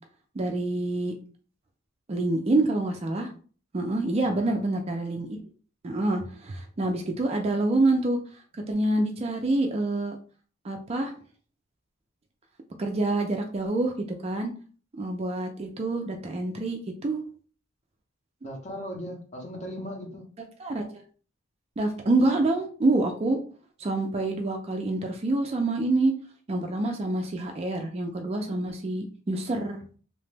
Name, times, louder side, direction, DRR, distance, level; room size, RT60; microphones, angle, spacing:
voice 1, 0.4-1.1 2.1-3.3 3.7-5.4 5.8-8.2 8.7-10.2 10.6-11.1 12.8-13.9 14.2-14.5 15.0-17.2 20.6-20.8 21.8-23.4 23.8-26.1 26.5-29.8, right 2 dB, 30° right, 3 dB, 0.3 m, -26 dB
voice 2, 4.3-4.6 18.4-20.3, equal, 30° left, 0 dB, 0.7 m, -38 dB
2.8 x 2.1 x 3.2 m, 0.41 s
head